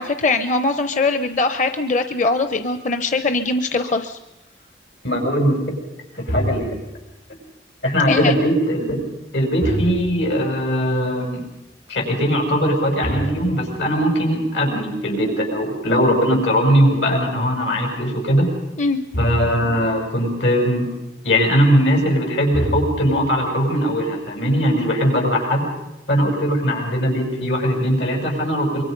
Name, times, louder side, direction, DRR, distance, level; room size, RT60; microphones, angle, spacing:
voice 1, 0.0-4.2 8.1-8.4 18.8-19.0, left 3 dB, 45° left, 9 dB, 0.8 m, -21 dB
voice 2, 5.0-5.6 6.1-6.7 7.8-9.0 9.3-11.4 11.9-18.5 19.2-20.9 21.2-25.6 26.1-28.8, equal, 85° left, 2 dB, 6.8 m, -20 dB
sound 1, 6.3-7.0 9.6-10.4 13.0-14.2 19.1-19.8 22.5-23.3, equal, 70° left, 4.5 m, -27 dB
25.0 x 23.5 x 5.3 m, 0.93 s
head